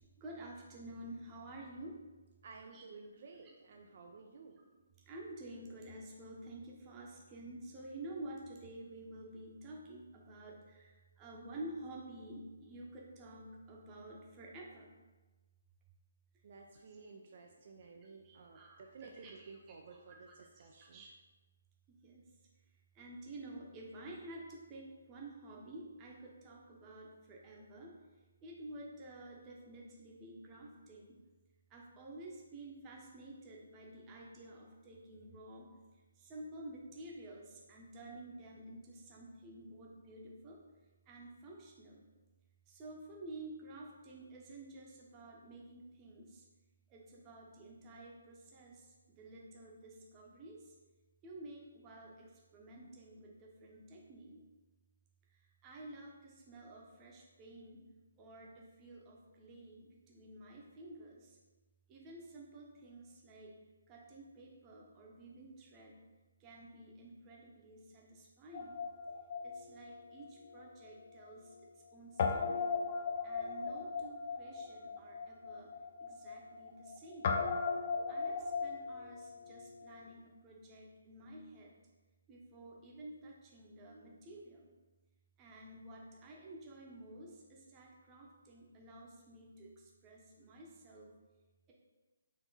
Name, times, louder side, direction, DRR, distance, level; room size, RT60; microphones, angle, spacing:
voice 1, 0.0-2.0 2.7-14.9 16.6-17.0 18.0-21.1 21.9-22.3 22.9-27.9 28.4-31.1 31.7-35.7 36.2-40.6 41.1-42.0 42.7-46.4 46.9-50.7 51.2-54.4 55.3-57.8 58.2-61.4 61.9-63.5 63.9-65.9 66.4-68.8 69.4-71.6 71.9-72.7 73.2-75.7 76.0-77.4 78.1-81.7 82.3-84.7 85.4-91.1, right 1 dB, 20° right, -2 dB, 0.8 m, -51 dB
voice 2, 2.4-4.6 16.4-21.0, right 4 dB, 50° right, 2 dB, 0.4 m, -54 dB
Guitar, 68.5-71.0 71.2-71.3 72.2-80.0, left 5 dB, 40° left, 0.5 m, -38 dB
4.5 x 2.8 x 4.0 m, 1.2 s
hypercardioid pair, 160°, 0 cm